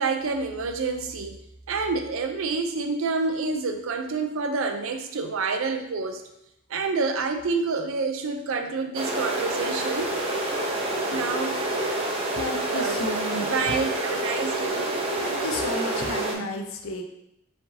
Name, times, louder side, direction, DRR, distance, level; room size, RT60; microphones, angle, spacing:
voice 1, 0.0-1.4 1.7-6.3 6.7-10.1 11.1-11.6 12.7-13.1 13.4-14.9, right 4 dB, 80° right, 6 dB, 0.5 m, -28 dB
sound 1, 8.9-16.3, right 1 dB, 30° right, 0.7 m, -28 dB
voice 2, 12.3-13.7 15.2-17.0, left 2 dB, 85° left, 4 dB, 0.6 m, -32 dB
4.7 x 3.5 x 2.7 m, 0.82 s
head